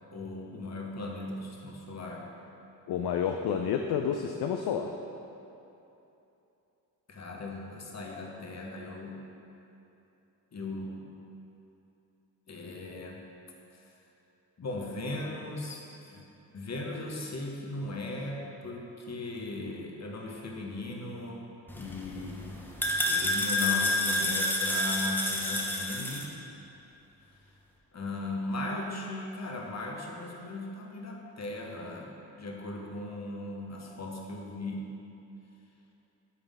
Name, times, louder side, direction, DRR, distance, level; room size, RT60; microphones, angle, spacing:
voice 1, 0.1-2.3 7.1-9.2 10.5-11.0 12.5-13.2 14.6-16.2 16.5-21.4 21.7-22.5 23.1-26.3 27.9-34.9, left 2 dB, 35° left, 0 dB, 1.1 m, -38 dB
voice 2, 2.9-4.9, left 7 dB, 60° left, 4 dB, 0.5 m, -29 dB
sound 1, 21.7-26.3, left 1 dB, 5° left, 0.9 m, -29 dB
9.3 x 3.5 x 3.5 m, 2.9 s
supercardioid pair, 45°, 45 cm